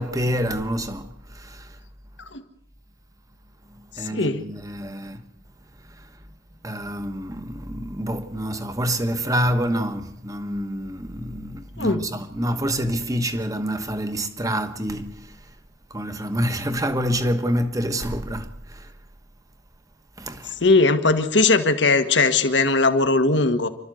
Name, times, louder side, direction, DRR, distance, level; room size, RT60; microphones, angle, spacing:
voice 1, 0.0-1.8 3.7-5.2 6.0-6.1 6.6-15.4 15.9-18.9 20.2-20.6, equal, 20° right, 1.3 m, -27 dB
voice 2, 4.1-4.4 11.8-12.0 20.6-23.7, left 3 dB, 65° left, 1.6 m, -19 dB
28.5 x 13.0 x 7.8 m
head